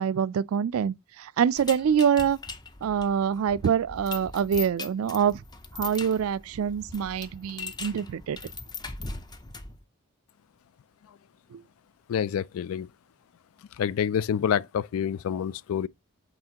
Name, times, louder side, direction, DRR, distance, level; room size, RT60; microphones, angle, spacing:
voice 1, 0.0-2.4 2.8-5.4 5.7-8.4 11.5-11.6, right 7 dB, 80° right, 0.3 m, -25 dB
sound 1, 1.6-9.8, left 4 dB, 20° left, 0.5 m, -40 dB
voice 2, 12.1-12.9 13.8-15.9, left 8 dB, 80° left, 0.3 m, -27 dB
7.9 x 4.2 x 2.8 m
head